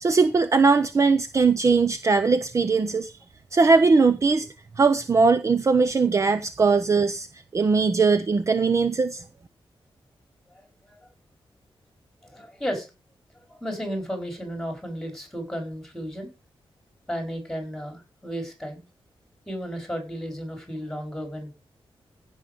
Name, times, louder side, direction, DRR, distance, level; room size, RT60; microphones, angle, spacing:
voice 1, 0.0-3.1 3.5-4.5 4.8-7.3 7.5-9.2, right 4 dB, 30° right, 0.6 m, -20 dB
voice 2, 10.5-11.1 12.2-12.9 13.5-16.3 17.1-18.8 19.5-21.5, equal, 5° left, 4.3 m, -33 dB
16.0 x 6.3 x 5.1 m
wide cardioid pair, 180°, 10 cm